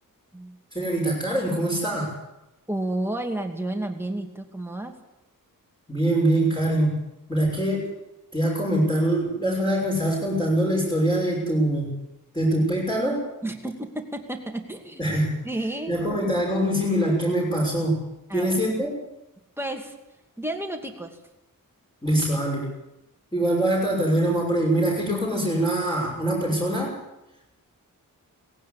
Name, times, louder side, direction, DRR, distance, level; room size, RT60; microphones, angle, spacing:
voice 1, 0.7-2.1 5.9-7.0 7.3-7.9 8.3-11.9 12.3-13.3 15.0-15.4 15.9-18.0 18.3-18.9 22.0-22.7 23.3-27.0, right 1 dB, 10° left, -4 dB, 6.4 m, -23 dB
voice 2, 2.7-4.9 13.4-15.0 15.4-15.9 18.3-18.6 19.6-19.9 20.4-21.2, right 1 dB, 5° right, 3 dB, 2.6 m, -31 dB
19.0 x 17.0 x 8.5 m, 0.90 s
wide cardioid pair, 140°, 35 cm